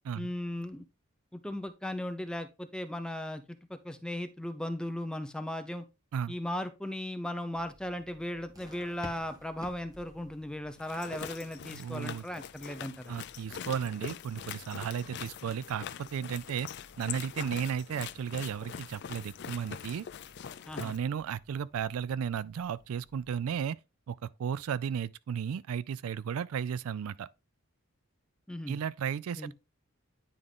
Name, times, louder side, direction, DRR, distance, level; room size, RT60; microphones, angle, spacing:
voice 1, 0.1-0.8 1.3-5.8 6.3-13.1 17.4-17.5 20.7-21.0 28.5-28.8 29.3-29.5, left 1 dB, 5° left, 0.6 m, -37 dB
sound 1, 7.5-23.6, equal, 15° right, 1.4 m, -57 dB
sound 2, 10.8-21.0, left 8 dB, 50° left, 0.4 m, -43 dB
voice 2, 11.6-12.2 13.1-16.7 17.0-20.1 20.8-23.8 24.1-27.3 28.7-29.5, right 7 dB, 75° right, 0.3 m, -34 dB
9.8 x 3.7 x 3.7 m
head